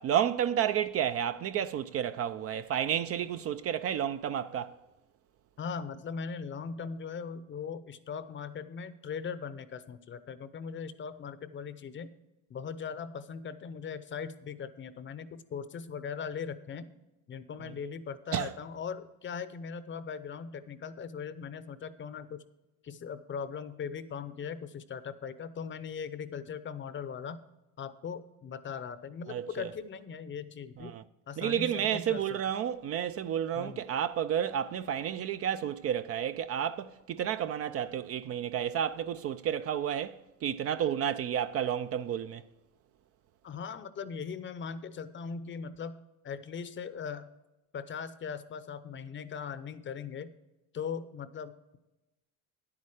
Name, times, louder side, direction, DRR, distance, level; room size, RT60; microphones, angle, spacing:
voice 1, 0.0-4.8 18.3-18.5 29.3-29.7 30.8-31.0 31.4-42.4, right 9 dB, 40° right, 0.4 m, -31 dB
voice 2, 5.6-12.1 12.5-16.9 17.3-22.4 22.8-27.4 27.8-30.9 31.3-32.4 33.5-33.8 43.4-46.0 46.2-47.3 47.7-50.3 50.7-51.8, left 6 dB, 30° left, 0.7 m, -39 dB
10.0 x 8.6 x 4.9 m
supercardioid pair, 105°, 38 cm